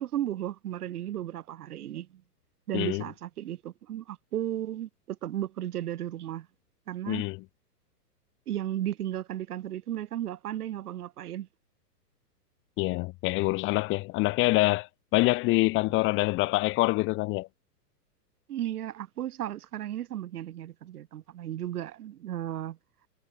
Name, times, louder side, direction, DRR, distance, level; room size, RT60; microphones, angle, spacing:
voice 1, 0.0-2.2 2.7-6.5 6.9-7.2 8.5-11.5 18.5-22.8, right 12 dB, 65° right, 3.1 m, -34 dB
voice 2, 7.1-7.4 12.8-17.5, left 22 dB, 25° left, 1.0 m, -26 dB
hypercardioid pair, 135°, 49 cm